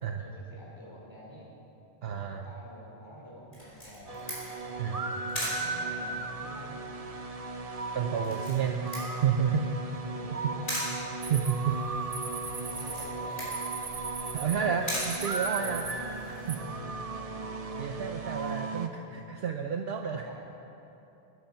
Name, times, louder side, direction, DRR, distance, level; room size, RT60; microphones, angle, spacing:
voice 1, 0.2-1.5 2.3-4.2 4.6-6.8 10.0-10.7 12.6-13.5 18.9-19.0 20.1-20.3, equal, 25° left, -5 dB, 4.3 m, -49 dB
voice 2, 2.0-2.4 4.8-5.0 7.9-8.9 9.2-9.7 11.3-11.8 14.3-15.8 16.3-16.6 17.8-20.2, right 7 dB, 65° right, 4 dB, 0.9 m, -30 dB
Camera, 3.5-16.0, equal, 50° left, 4.9 m, -40 dB
sound 1, 4.1-18.9, right 3 dB, 35° right, 0.9 m, -36 dB
sound 2, 11.2-16.6, right 5 dB, 85° right, 1.5 m, -41 dB
21.5 x 10.5 x 5.7 m, 3.0 s
omnidirectional pair, 1.1 m